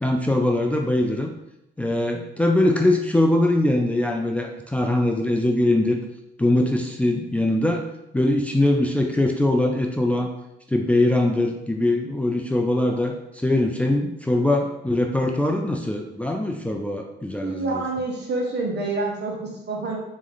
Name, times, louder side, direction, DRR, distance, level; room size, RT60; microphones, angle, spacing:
voice 1, 0.0-1.3 1.8-6.0 6.4-7.8 8.1-10.3 10.7-17.7, left 1 dB, 5° left, 2 dB, 0.5 m, -22 dB
voice 2, 17.4-20.0, right 3 dB, 60° right, -1 dB, 1.3 m, -27 dB
4.1 x 3.1 x 3.9 m, 0.86 s
cardioid pair, 90°, 20 cm